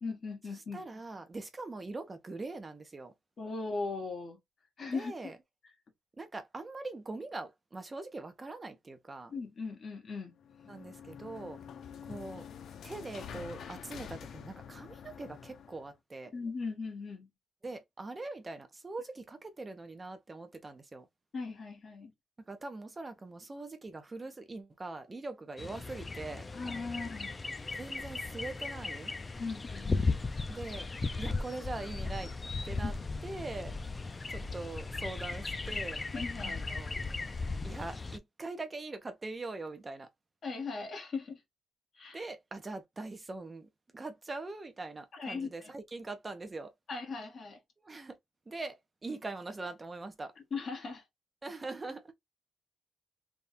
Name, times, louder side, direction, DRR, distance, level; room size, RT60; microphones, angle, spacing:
voice 1, 0.0-0.8 3.4-4.4 4.8-5.2 9.3-10.3 16.3-17.3 21.3-22.1 26.5-27.3 29.4-30.2 32.7-32.9 36.1-36.6 40.4-41.4 41.9-42.2 45.1-45.7 46.9-47.6 50.5-51.0, left 4 dB, 50° left, 1.3 m, -38 dB
voice 2, 0.7-3.1 4.9-5.3 6.2-9.3 10.7-11.6 12.0-12.4 12.8-16.3 17.6-21.1 22.5-26.5 27.8-29.1 30.5-30.9 31.2-32.3 32.6-32.9 33.2-33.8 34.3-36.1 36.4-37.0 37.6-40.1 42.1-46.7 47.8-48.2 48.5-50.3 51.4-52.1, right 3 dB, 25° right, 0.7 m, -42 dB
sound 1, 10.4-15.9, left 8 dB, 75° left, 0.5 m, -47 dB
sound 2, 25.6-38.2, left 3 dB, 25° left, 0.4 m, -36 dB
3.5 x 2.3 x 4.1 m
wide cardioid pair, 140°, 0 cm